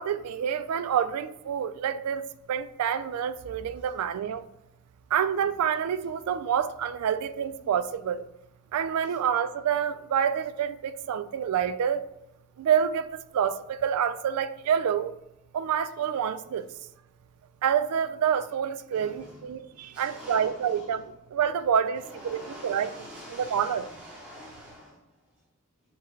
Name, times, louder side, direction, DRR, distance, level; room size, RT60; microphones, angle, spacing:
voice 1, 0.0-4.4 5.1-8.2 8.7-12.0 12.6-15.1 15.5-16.7 17.6-23.8, right 8 dB, 85° right, 0.3 m, -28 dB
voice 2, 18.9-21.0 22.0-25.0, equal, 5° right, 0.8 m, -46 dB
5.8 x 2.8 x 3.1 m
head